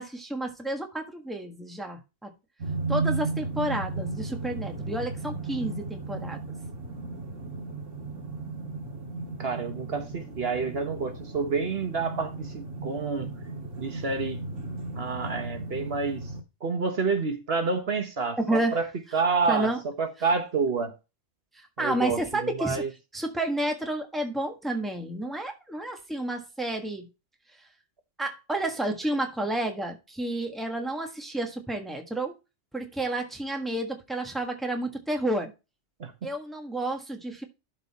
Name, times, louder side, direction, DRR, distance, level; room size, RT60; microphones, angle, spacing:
voice 1, 0.0-2.3 2.9-6.4 18.4-18.8 19.5-19.8 21.5-22.8 23.1-27.1 28.2-32.3 32.7-35.5 36.2-37.4, right 1 dB, ahead, 1.3 m, -30 dB
sound 1, 2.6-16.4, right 3 dB, 90° right, 2.2 m, -35 dB
voice 2, 9.4-13.3 13.8-14.4 14.9-16.2 16.6-20.9 21.8-22.9 36.0-36.1, right 4 dB, 55° right, 1.4 m, -28 dB
12.0 x 4.1 x 4.1 m
omnidirectional pair, 1.2 m